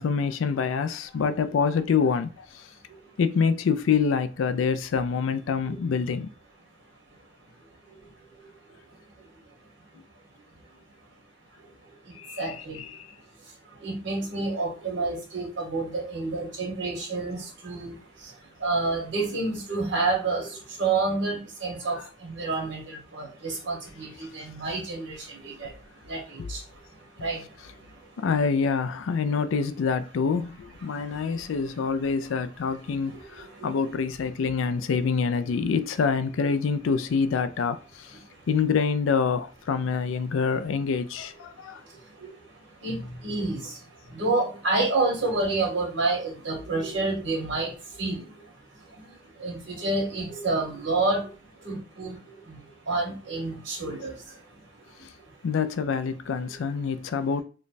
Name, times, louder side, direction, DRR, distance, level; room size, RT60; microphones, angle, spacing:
voice 1, 0.0-2.7 3.2-6.3 12.2-13.1 21.9-22.0 26.4-26.5 28.2-38.2 38.5-41.8 55.0-55.1 55.4-57.4, left 5 dB, 90° left, 0.4 m, -26 dB
voice 2, 12.4-12.8 13.8-17.9 18.6-20.5 20.8-25.7 26.1-26.6 27.2-27.4 33.6-33.7 42.8-43.6 44.1-47.7 48.0-48.2 49.4-51.3 51.6-52.1 52.5-52.6 52.9-54.1, right 3 dB, 65° right, 1.5 m, -28 dB
3.1 x 2.2 x 4.0 m
head